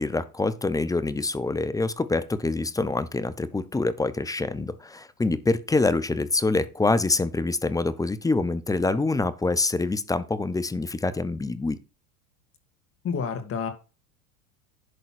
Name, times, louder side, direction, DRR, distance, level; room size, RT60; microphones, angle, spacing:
voice 1, 0.0-11.8, left 3 dB, 10° left, 0.8 m, -25 dB
voice 2, 13.0-13.7, left 6 dB, 30° left, 2.4 m, -29 dB
11.0 x 4.0 x 6.2 m
hypercardioid pair, 95°, 43 cm